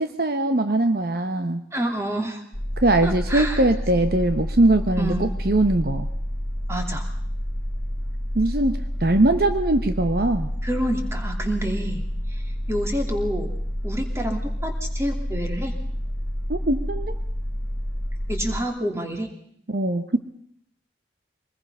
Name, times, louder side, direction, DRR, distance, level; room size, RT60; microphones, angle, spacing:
voice 1, 0.0-1.6 2.8-6.1 8.3-10.5 16.5-17.1 19.7-20.2, right 2 dB, 55° right, 8 dB, 1.0 m, -21 dB
voice 2, 1.7-2.4 3.0-3.6 5.0-5.3 6.7-7.1 10.6-12.0 12.3-12.4 12.7-13.5 13.8-15.7 18.3-19.3, equal, 15° right, 3 dB, 2.8 m, -28 dB
sound 1, 2.5-18.6, equal, 10° left, 1.9 m, -29 dB
24.5 x 20.0 x 5.6 m, 0.68 s
head